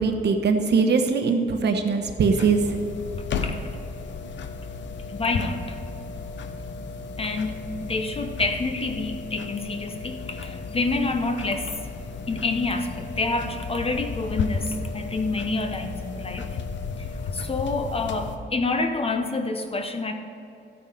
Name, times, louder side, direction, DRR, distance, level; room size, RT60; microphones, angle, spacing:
voice 1, 0.0-2.6, right 5 dB, 65° right, 5 dB, 1.1 m, -21 dB
sound 1, 2.3-18.4, left 4 dB, 80° left, 0.9 m, -34 dB
voice 2, 5.1-5.8 7.2-11.7 12.3-16.5 17.3-20.1, left 3 dB, 30° left, 6 dB, 0.9 m, -28 dB
13.5 x 8.8 x 5.2 m, 2.9 s
wide cardioid pair, 130°, 19 cm